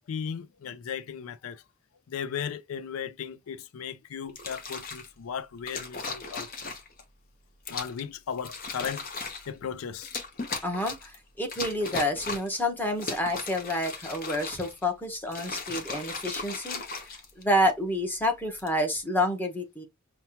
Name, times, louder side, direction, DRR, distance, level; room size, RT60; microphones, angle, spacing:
voice 1, 0.1-1.6 2.1-6.5 7.7-9.1 9.5-10.1, left 7 dB, 85° left, 0.4 m, -36 dB
sound 1, 4.3-5.1 5.7-7.0 7.6-8.0 8.4-9.5 10.0-11.1 11.5-12.6 12.9-14.8 15.3-17.7 18.4-18.7, left 4 dB, 45° left, 0.9 m, -37 dB
voice 2, 10.6-16.8 17.4-19.9, left 1 dB, 10° left, 1.0 m, -28 dB
5.6 x 2.2 x 2.8 m
head